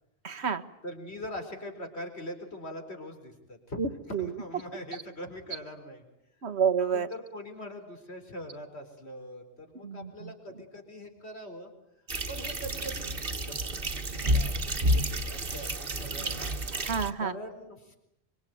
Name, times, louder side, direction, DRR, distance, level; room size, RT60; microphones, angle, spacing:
voice 1, 0.2-0.6 3.8-4.3 6.4-7.1 9.8-10.3 16.8-17.3, right 6 dB, 75° right, 10 dB, 1.6 m, -29 dB
voice 2, 0.8-6.1 6.9-11.7 12.3-13.8 14.1-16.4 17.2-18.0, equal, 75° left, 5 dB, 4.6 m, -42 dB
sound 1, 12.1-17.1, right 1 dB, 55° right, 1.8 m, -30 dB
25.5 x 25.0 x 9.4 m, 0.81 s
omnidirectional pair, 1.1 m